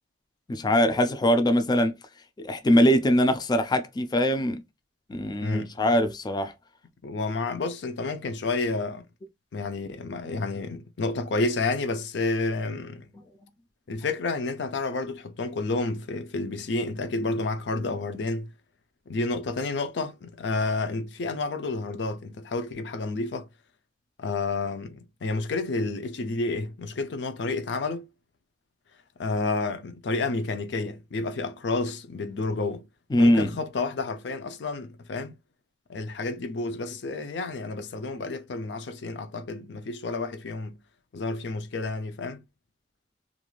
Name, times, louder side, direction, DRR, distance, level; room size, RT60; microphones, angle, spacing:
voice 1, 0.5-1.9 2.4-4.6 5.1-6.5 33.1-33.5, equal, 25° left, 0.4 m, -22 dB
voice 2, 5.4-5.8 7.0-9.1 9.5-13.1 13.9-18.5 19.1-23.5 24.2-28.1 29.2-32.9 33.2-35.3 35.9-40.8 41.1-42.4, left 3 dB, 75° left, 0.5 m, -30 dB
3.1 x 2.5 x 2.3 m
head